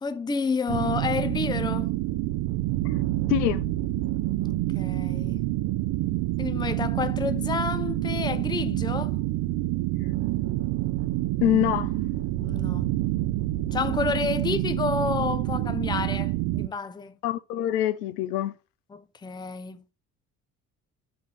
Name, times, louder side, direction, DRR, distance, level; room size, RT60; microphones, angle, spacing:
voice 1, 0.0-1.9 4.4-5.4 6.4-9.2 12.4-13.0 13.7-17.2 18.9-19.8, left 5 dB, 10° left, 0.5 m, -30 dB
sound 1, 0.7-16.7, right 16 dB, 55° right, 0.6 m, -27 dB
voice 2, 3.3-3.6 11.4-11.9 17.2-18.5, left 13 dB, 80° left, 0.6 m, -24 dB
6.1 x 3.7 x 5.6 m
hypercardioid pair, 55°, 47 cm